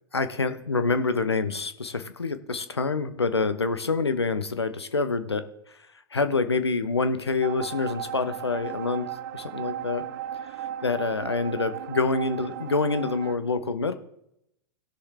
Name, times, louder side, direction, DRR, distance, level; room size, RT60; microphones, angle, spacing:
voice 1, 0.1-5.4 6.1-9.1 9.3-10.0 10.8-13.9, left 4 dB, 80° left, 10 dB, 0.9 m, -26 dB
sound 1, 7.4-13.4, right 11 dB, 55° right, 0.5 m, -36 dB
17.5 x 6.5 x 3.6 m, 0.79 s
figure-of-eight pair, 95°, 13 cm